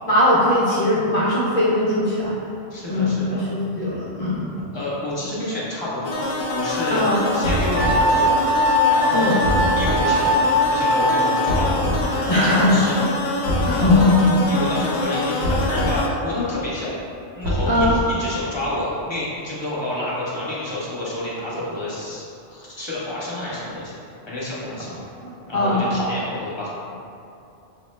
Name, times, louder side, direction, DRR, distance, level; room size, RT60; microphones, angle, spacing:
voice 1, 0.1-2.4 2.9-4.5 6.9-7.2 9.1-9.3 12.3-12.8 13.6-14.4 17.7-18.0 25.5-25.9, left 1 dB, 50° left, -8 dB, 0.4 m, -19 dB
voice 2, 2.7-3.4 4.7-7.0 7.3-8.3 8.9-9.4 9.7-11.8 12.1-13.0 13.7-14.2 14.4-16.9 17.3-23.9 24.3-24.9 25.5-26.7, left 1 dB, 25° left, -8 dB, 0.9 m, -29 dB
sound 1, 6.0-16.1, left 2 dB, 65° left, 0.8 m, -25 dB
sound 2, 7.4-8.1 9.4-10.0 11.5-12.0 13.4-14.0 15.4-16.0 17.4-18.2, equal, 55° right, 0.9 m, -24 dB
Wind instrument woodwind instrument, 7.7-11.5, left 1 dB, 85° right, 0.3 m, -20 dB
5.2 x 2.1 x 3.1 m, 2.7 s
omnidirectional pair, 1.2 m